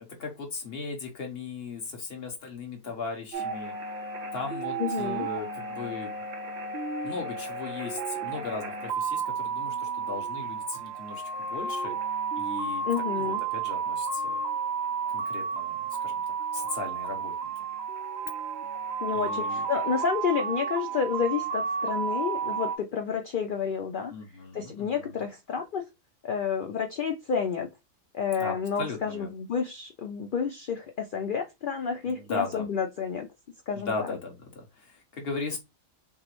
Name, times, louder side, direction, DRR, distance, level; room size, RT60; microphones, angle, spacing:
voice 1, 0.2-3.7 4.3-6.2 7.0-12.0 12.4-12.8 13.1-14.4 15.1-16.2 16.5-17.5 19.1-19.6 24.1-25.2 28.4-29.3 32.0-32.6 33.7-35.6, left 4 dB, 45° left, 1.2 m, -37 dB
sound 1, 3.3-22.8, right 5 dB, 60° right, 0.7 m, -32 dB
voice 2, 4.8-5.3 12.8-13.4 19.0-24.1 24.5-25.8 26.2-27.7 28.1-33.3 33.7-34.2, left 6 dB, 90° left, 0.4 m, -30 dB
5.7 x 2.0 x 3.0 m
omnidirectional pair, 1.5 m